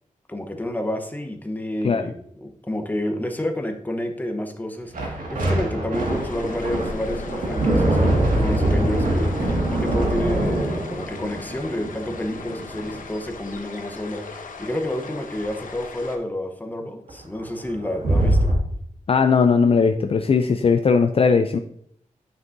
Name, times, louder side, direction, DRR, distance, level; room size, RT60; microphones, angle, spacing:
voice 1, 0.3-18.5, left 1 dB, 15° left, 4 dB, 0.9 m, -29 dB
sound 1, 4.9-12.9 17.1-17.2 17.4-18.6, right 1 dB, 85° right, 1.9 m, -23 dB
sound 2, 5.9-16.2, left 4 dB, 80° left, 0.9 m, -38 dB
voice 2, 19.1-21.6, left 5 dB, 45° left, 7 dB, 0.4 m, -18 dB
9.5 x 6.0 x 2.6 m, 0.67 s
wide cardioid pair, 120°, 14 cm